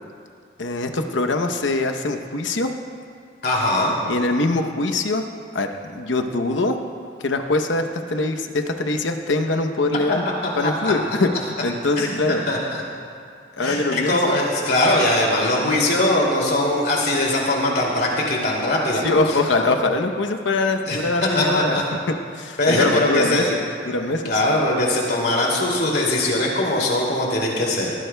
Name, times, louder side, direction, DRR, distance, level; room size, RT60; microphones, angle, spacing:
voice 1, 0.6-2.7 4.0-5.2 5.5-6.8 7.2-10.2 10.6-12.4 13.6-14.4 19.0-24.3, left 2 dB, 85° left, 6 dB, 0.8 m, -23 dB
voice 2, 3.4-3.9 10.6-10.9 12.0-12.8 13.6-19.7 20.9-21.0 21.3-21.8 22.6-23.5 24.2-27.9, left 1 dB, 60° left, -2 dB, 2.6 m, -21 dB
18.5 x 15.0 x 2.2 m, 2.3 s
head